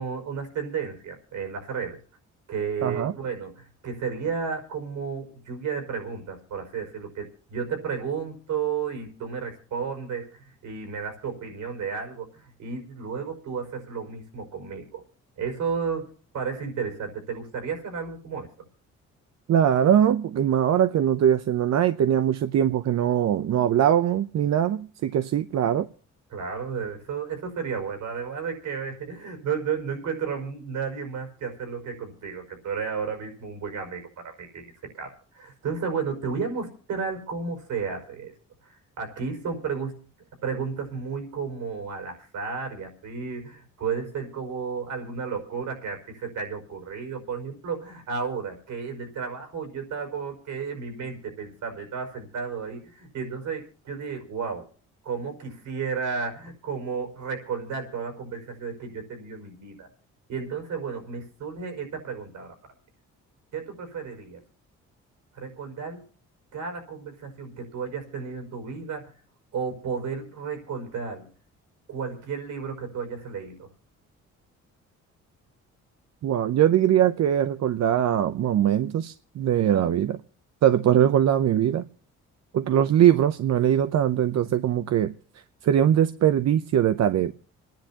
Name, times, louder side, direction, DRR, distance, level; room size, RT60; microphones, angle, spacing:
voice 1, 0.0-2.0 2.5-15.0 15.4-18.5 26.3-38.3 38.6-40.0 40.4-54.7 55.0-59.9 60.3-62.5 63.5-64.4 65.3-66.1 66.5-69.1 69.5-71.3 71.9-73.7, right 6 dB, 80° right, 5.3 m, -33 dB
voice 2, 2.8-3.1 19.5-25.9 76.2-80.2 80.6-81.8 82.5-85.1 85.6-87.3, right 10 dB, 60° right, 0.8 m, -21 dB
28.0 x 10.5 x 2.9 m
cardioid pair, 90°, 30 cm